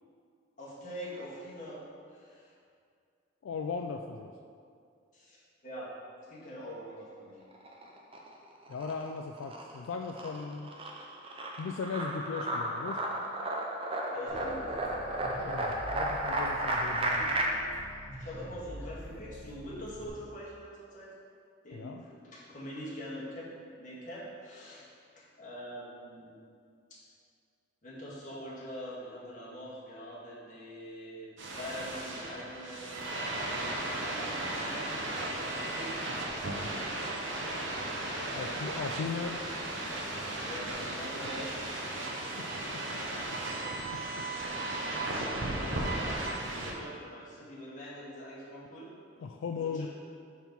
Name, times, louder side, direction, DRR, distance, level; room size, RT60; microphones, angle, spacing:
voice 1, 0.6-2.5 5.1-5.9 6.3-7.4 14.1-14.8 18.2-21.1 21.6-24.9 25.2-26.4 26.9-27.0 27.8-33.0 33.8-36.0 38.2-38.9 40.4-41.5 45.2-48.9 49.5-49.9, equal, 40° left, -7 dB, 1.7 m, -44 dB
voice 2, 3.4-4.3 8.7-10.7 11.6-13.0 15.4-17.3 21.7-22.0 38.4-39.4 42.4-42.5 42.7-43.0 43.3-44.2 49.2-49.9, left 5 dB, 80° left, 4 dB, 0.3 m, -38 dB
sound 1, 7.5-8.3 8.7-17.5, right 1 dB, 30° right, 0.6 m, -33 dB
sound 2, 14.3-20.1, equal, 15° left, 1.6 m, -45 dB
sound 3, 31.4-46.7, right 2 dB, 70° right, 0.9 m, -35 dB
5.9 x 4.5 x 5.3 m, 2.3 s
head